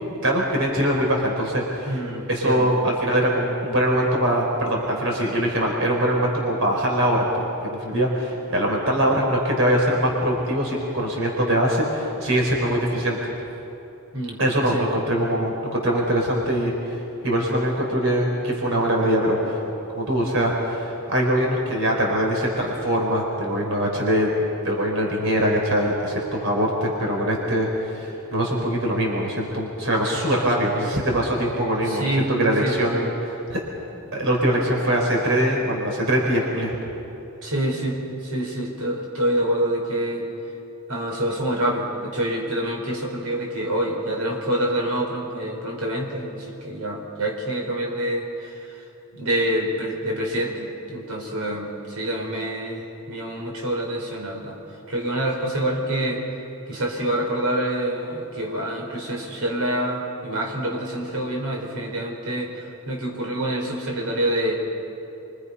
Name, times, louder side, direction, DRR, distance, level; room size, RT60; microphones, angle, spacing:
voice 1, 0.2-2.0 2.3-13.3 14.4-19.6 19.9-24.3 24.6-33.6 34.1-36.7, equal, 60° right, -1 dB, 4.2 m, -22 dB
voice 2, 1.9-2.7 14.1-14.4 14.7-14.8 31.8-32.3 32.6-32.7 37.4-40.3 40.9-48.7 49.1-54.6 54.9-56.2 56.7-64.5, right 1 dB, 85° right, 0 dB, 4.6 m, -26 dB
30.0 x 24.5 x 5.6 m, 2.9 s
head